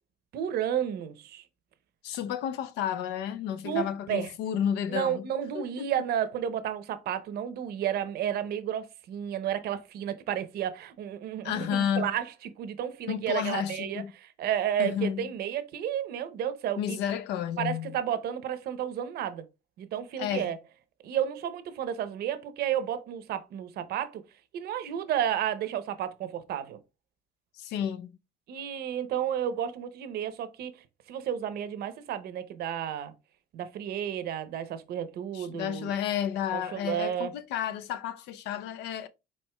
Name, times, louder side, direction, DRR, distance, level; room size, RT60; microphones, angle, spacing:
voice 1, 0.3-1.4 3.6-4.3 4.9-12.3 12.6-17.0 17.6-19.4 19.8-20.6 21.0-24.2 24.5-26.8 28.5-30.7 31.1-33.1 33.5-35.9 36.5-37.3, right 9 dB, 70° right, 0.7 m, -32 dB
voice 2, 2.0-5.2 5.5-5.9 11.4-12.1 13.1-14.1 14.8-15.3 16.8-18.0 20.2-20.5 27.6-28.1 35.3-39.1, left 9 dB, 85° left, 0.5 m, -31 dB
4.4 x 4.3 x 2.2 m
cardioid pair, 110°, 17 cm